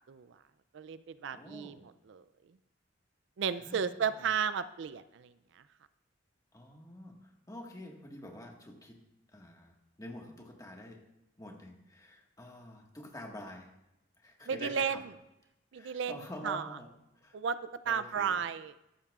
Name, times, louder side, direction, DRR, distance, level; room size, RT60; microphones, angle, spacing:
voice 1, 0.7-1.8 2.1-2.2 3.4-5.3 14.5-15.0 15.7-16.7 17.3-17.6 17.9-18.7, right 7 dB, 65° right, 14 dB, 0.4 m, -33 dB
voice 2, 1.3-1.8 3.6-3.8 6.5-7.1 7.5-9.0 9.3-11.0 11.4-13.7 14.2-15.0 15.7-16.9 17.2-17.4 17.8-18.4, left 1 dB, 20° left, 1 dB, 1.6 m, -47 dB
14.0 x 12.0 x 2.4 m, 0.92 s
head